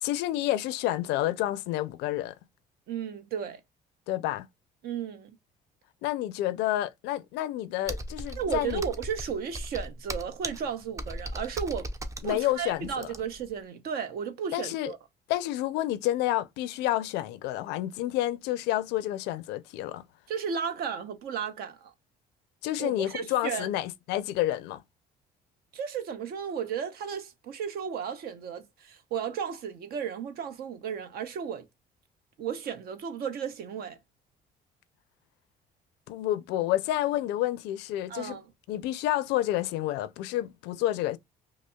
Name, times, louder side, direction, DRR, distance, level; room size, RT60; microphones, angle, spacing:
voice 1, 0.0-2.3 4.1-4.5 6.0-8.8 12.2-13.1 14.5-14.9 15.3-20.0 22.6-24.8 36.1-38.4 38.7-41.2, left 14 dB, 90° left, 0.4 m, -29 dB
voice 2, 2.9-3.6 4.8-5.4 8.4-11.9 12.2-15.0 20.3-21.9 22.8-23.7 25.7-31.7 32.4-34.0 38.1-38.5, right 7 dB, 65° right, 0.7 m, -34 dB
Computer keyboard, 7.9-13.5, right 1 dB, 20° right, 0.5 m, -37 dB
5.1 x 2.0 x 2.2 m
cardioid pair, 110°, 17 cm